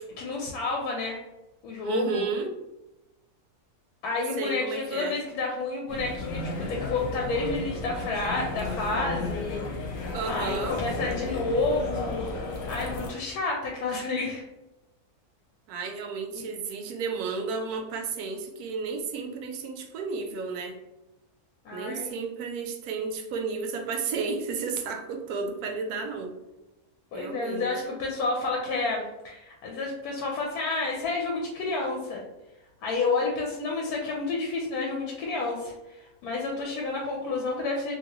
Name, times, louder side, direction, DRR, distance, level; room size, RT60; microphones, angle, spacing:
voice 1, 0.2-1.2 1.6-2.3 4.0-12.3 12.7-14.4 21.6-22.1 27.1-32.2 32.8-37.9, left 3 dB, 90° left, -1 dB, 1.1 m, -30 dB
voice 2, 1.8-2.5 4.4-5.2 10.1-10.8 15.7-20.8 21.7-26.3 27.1-27.7, right 4 dB, 85° right, 4 dB, 1.1 m, -32 dB
sound 1, 5.9-13.1, left 3 dB, 70° left, 1.0 m, -33 dB
2.8 x 2.7 x 2.9 m, 0.99 s
omnidirectional pair, 1.6 m